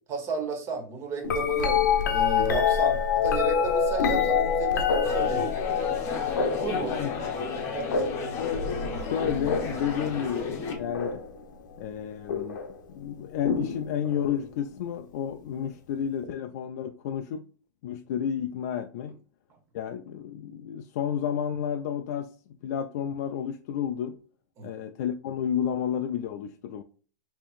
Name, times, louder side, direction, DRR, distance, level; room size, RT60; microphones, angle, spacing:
voice 1, 0.1-5.5 6.2-7.0 7.7-8.1 24.6-24.7, right 4 dB, 25° right, 1.1 m, -33 dB
sound 1, 1.2-11.4 12.3-12.7 13.4-14.4 16.2-16.3, left 7 dB, 85° left, 0.8 m, -27 dB
sound 2, 5.0-10.7, left 4 dB, 25° left, 0.9 m, -34 dB
voice 2, 6.7-7.1 8.4-11.2 11.8-12.6 12.9-17.4 17.8-19.1 19.7-24.2 24.6-26.8, left 8 dB, 55° left, 0.4 m, -31 dB
5.0 x 2.9 x 2.4 m
supercardioid pair, 155°, 10 cm